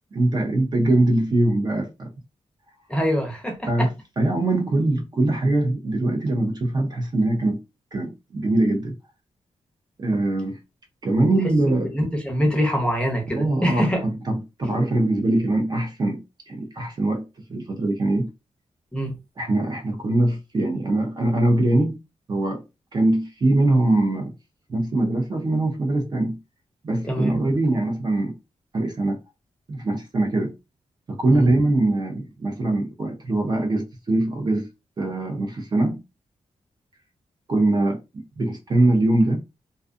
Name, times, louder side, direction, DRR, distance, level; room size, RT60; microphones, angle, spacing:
voice 1, 0.1-2.1 3.7-7.6 7.9-8.9 10.0-10.6 11.0-11.9 13.3-17.2 17.5-18.3 19.4-22.0 22.3-22.6 22.9-24.3 24.7-26.4 26.8-28.4 28.7-29.2 29.7-30.5 31.1-34.7 35.0-36.0 37.5-38.0 38.4-39.4, right 2 dB, 35° right, 0.6 m, -22 dB
voice 2, 2.9-3.9 11.8-14.0 18.9-19.1 27.1-27.3 31.3-31.5, equal, 10° left, 0.6 m, -24 dB
2.6 x 2.3 x 2.4 m
wide cardioid pair, 170°, 12 cm